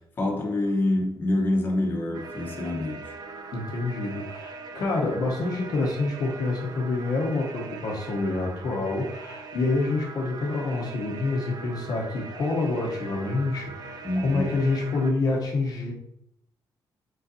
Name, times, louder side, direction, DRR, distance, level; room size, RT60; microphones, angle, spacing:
voice 1, 0.2-3.0 14.0-14.6, left 1 dB, 25° left, -1 dB, 0.9 m, -26 dB
sound 1, 2.1-15.1, right 4 dB, 60° right, 0.5 m, -41 dB
voice 2, 3.5-15.9, left 3 dB, 55° left, -1 dB, 0.8 m, -27 dB
5.2 x 3.9 x 2.6 m, 0.77 s
wide cardioid pair, 170°, 8 cm